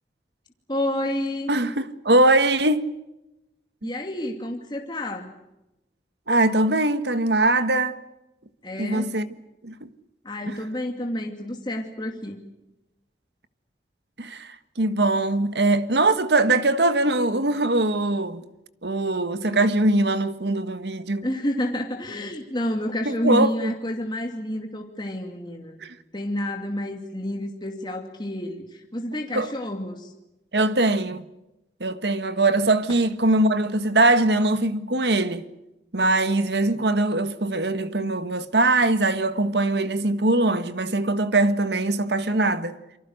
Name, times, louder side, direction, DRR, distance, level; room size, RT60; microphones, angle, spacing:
voice 1, 0.7-1.5 3.8-5.3 8.6-9.1 10.2-12.4 21.2-25.8 26.1-30.1, left 1 dB, 25° left, 2.5 m, -29 dB
voice 2, 1.5-2.9 3.8-3.9 6.3-8.0 8.8-9.3 9.6-9.9 10.5-10.6 14.2-18.4 18.8-21.3 23.0-23.7 25.8-25.9 29.3-29.5 30.5-31.3 31.8-35.5 35.9-42.8, right 2 dB, 75° right, 1.6 m, -22 dB
28.0 x 24.5 x 6.5 m
head